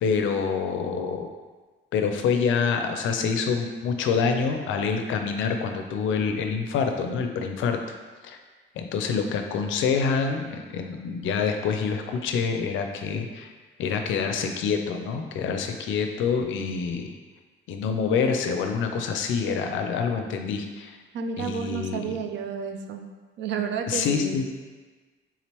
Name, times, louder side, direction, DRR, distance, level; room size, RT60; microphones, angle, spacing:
voice 1, 0.0-1.3 1.9-7.8 8.2-8.4 8.8-13.5 13.8-17.1 17.7-21.0 21.4-22.1 23.9-24.5, left 5 dB, 80° left, 5 dB, 0.4 m, -26 dB
voice 2, 21.1-23.0 23.4-24.5, right 6 dB, 65° right, 6 dB, 0.4 m, -31 dB
3.7 x 2.9 x 3.0 m, 1.3 s
cardioid pair, 90°, 20 cm